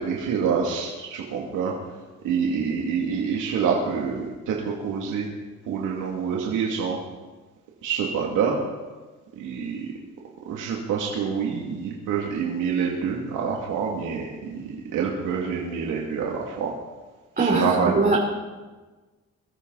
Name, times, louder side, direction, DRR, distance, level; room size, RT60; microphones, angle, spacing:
voice 1, 0.0-1.7 2.2-5.3 5.7-7.0 7.8-8.6 9.4-9.9 10.5-16.7 17.4-18.2, right 6 dB, 85° right, -2 dB, 2.5 m, -26 dB
voice 2, 17.4-18.2, right 3 dB, 30° right, -4 dB, 3.6 m, -22 dB
23.0 x 14.0 x 4.1 m, 1.3 s
cardioid pair, 90°, 30 cm